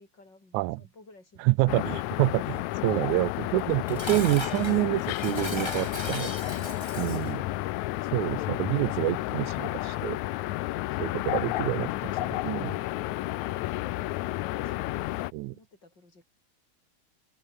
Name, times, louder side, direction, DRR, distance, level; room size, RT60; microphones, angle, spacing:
voice 1, 0.0-2.1 2.8-3.3 15.3-16.3, left 2 dB, 35° left, 7.6 m, -57 dB
voice 2, 1.4-6.3 7.0-7.4 8.1-10.2 11.0-12.8 15.3-15.5, right 20 dB, 85° right, 1.9 m, -27 dB
sound 1, 1.7-15.3, left 17 dB, 80° left, 2.0 m, -31 dB
Dishes pots and pans, 3.6-7.4, left 2 dB, 15° left, 1.1 m, -37 dB
open air
omnidirectional pair, 3.5 m